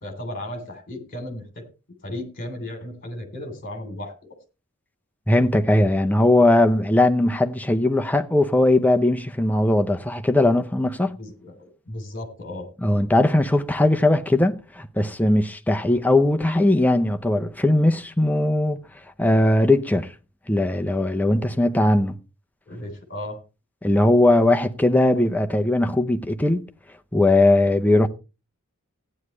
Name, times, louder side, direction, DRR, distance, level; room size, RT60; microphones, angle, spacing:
voice 1, 0.0-1.6 2.0-4.1 11.2-12.7 22.7-23.4, left 1 dB, 40° left, 3.2 m, -35 dB
voice 2, 5.3-11.2 12.8-18.8 19.2-20.1 20.5-22.2 23.8-26.6 27.1-28.1, left 1 dB, 5° left, 0.6 m, -19 dB
15.0 x 9.7 x 3.2 m
head